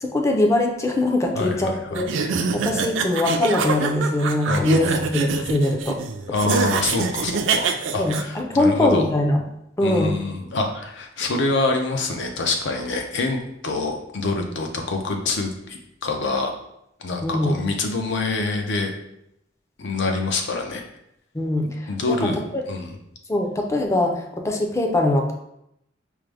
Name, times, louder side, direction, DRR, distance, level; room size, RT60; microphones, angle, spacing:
voice 1, 0.0-6.0 8.0-9.4 9.8-10.1 17.2-17.6 21.3-22.6 23.3-25.3, left 1 dB, 15° left, 2 dB, 0.4 m, -22 dB
voice 2, 1.4-2.0 4.5-5.1 6.3-9.1 9.8-16.5 17.0-18.9 19.8-20.8 21.9-23.0, left 3 dB, 65° left, 3 dB, 0.6 m, -26 dB
sound 1, 1.9-8.2, right 5 dB, 70° right, 0.3 m, -25 dB
4.8 x 2.0 x 3.3 m, 0.80 s
head